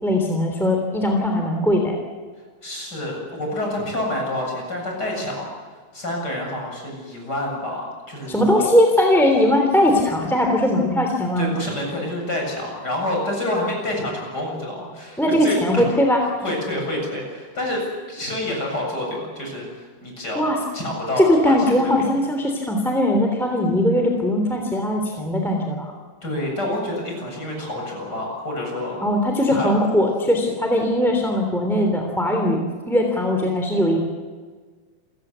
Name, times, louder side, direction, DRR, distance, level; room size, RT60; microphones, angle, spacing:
voice 1, 0.0-2.0 8.3-11.5 15.2-16.2 20.3-20.6 21.2-25.9 29.0-34.0, left 1 dB, ahead, 2 dB, 2.2 m, -20 dB
voice 2, 2.6-5.5 5.9-8.7 11.4-15.8 16.4-17.8 18.1-20.5 20.7-21.5 21.8-22.0 26.2-29.0 29.5-29.7, left 1 dB, 20° left, 0 dB, 7.6 m, -28 dB
29.0 x 16.5 x 8.2 m, 1.5 s
omnidirectional pair, 4.9 m